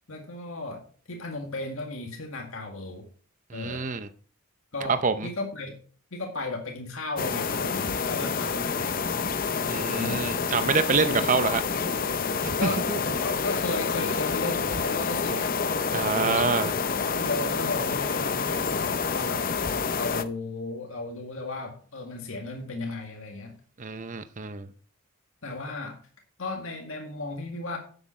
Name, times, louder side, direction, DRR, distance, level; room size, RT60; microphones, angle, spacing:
voice 1, 0.1-3.0 3.5-3.9 4.7-5.8 6.1-9.1 9.9-10.4 11.0-11.3 12.6-12.9 13.2-15.6 16.1-16.4 17.1-19.5 19.9-23.6 25.4-26.0 26.4-27.8, left 2 dB, 60° left, 2 dB, 1.9 m, -35 dB
voice 2, 3.5-4.1 5.0-5.3 9.7-11.6 12.4-12.5 12.9-13.0 15.9-16.7 23.8-24.7, right 4 dB, 35° right, 10 dB, 0.6 m, -26 dB
sound 1, 7.2-20.2, left 5 dB, 40° left, 0.6 m, -28 dB
10.0 x 7.9 x 4.3 m, 0.42 s
head